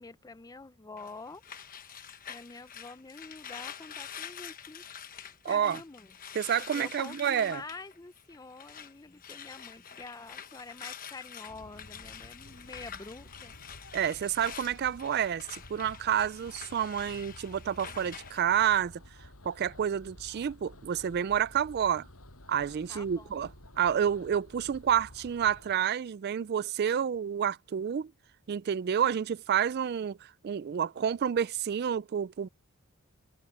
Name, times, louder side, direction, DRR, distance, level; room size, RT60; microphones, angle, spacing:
voice 1, 0.0-1.4 2.3-4.8 5.4-6.2 6.7-13.6 17.8-18.1 22.9-23.4, left 3 dB, 15° left, 0.5 m, -47 dB
sound 1, 1.0-8.9 9.2-18.4, left 8 dB, 40° left, 1.1 m, -46 dB
voice 2, 5.4-5.8 6.3-7.6 13.9-19.0 19.4-22.1 22.5-23.5 23.8-28.1 28.5-32.5, right 8 dB, 45° right, 0.3 m, -29 dB
sound 2, 11.5-25.8, left 1 dB, 80° left, 7.2 m, -52 dB
head